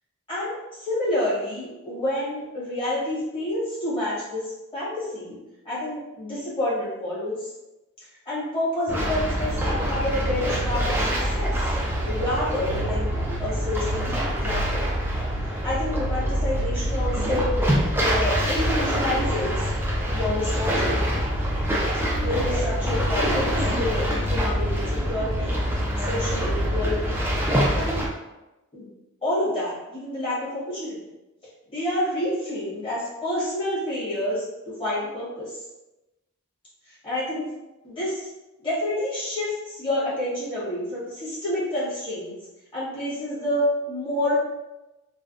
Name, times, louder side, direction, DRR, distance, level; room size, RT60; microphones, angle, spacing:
voice 1, 0.3-5.4 5.6-7.5 8.2-11.7 12.0-14.0 14.3-14.8 15.6-17.5 18.0-19.7 20.1-21.0 22.2-25.6 26.0-27.2 27.7-28.1 28.7-28.9 29.2-31.0 31.7-35.6 36.9-37.5 37.8-38.3 38.6-42.4 42.7-44.3, left 1 dB, 25° left, -10 dB, 1.4 m, -28 dB
sound 1, 8.9-28.1, equal, 10° right, 0.4 m, -25 dB
3.2 x 2.2 x 2.5 m, 1.0 s
head